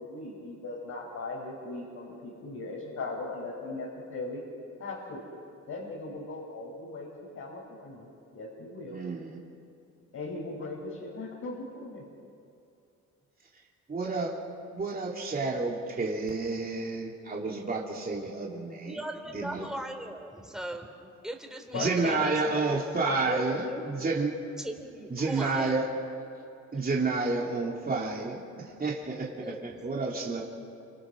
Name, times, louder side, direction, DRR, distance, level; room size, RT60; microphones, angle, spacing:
voice 1, 0.0-4.4 4.8-5.3 5.7-9.0 10.1-12.0 21.7-22.3, left 3 dB, 65° left, -4 dB, 5.8 m, -38 dB
voice 2, 8.9-9.4 13.9-14.4 14.7-19.0 19.3-19.6 21.7-24.3 25.1-25.8 26.7-30.4, right 3 dB, 30° right, -2 dB, 3.0 m, -30 dB
voice 3, 18.8-24.1 24.6-25.8 29.4-29.7, right 1 dB, ahead, 3 dB, 3.6 m, -38 dB
28.5 x 27.0 x 6.3 m, 2.6 s
cardioid pair, 90°, 30 cm